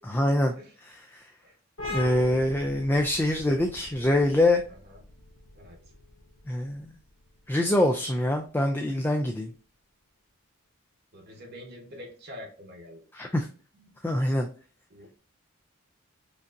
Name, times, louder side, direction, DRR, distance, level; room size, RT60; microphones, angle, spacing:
voice 1, 0.0-0.5 0.8-1.2 1.9-4.6 6.5-6.9 7.5-9.5 13.1-13.5 14.0-14.5, left 1 dB, 10° left, 2 dB, 0.3 m, -24 dB
sound 1, 1.8-9.1, left 2 dB, 80° left, 1.2 m, -42 dB
voice 2, 4.7-5.0 5.5-5.8 11.1-13.0 13.7-13.9 14.9-15.1, left 1 dB, 50° right, 1 dB, 1.0 m, -46 dB
5.1 x 2.7 x 2.4 m, 0.39 s
head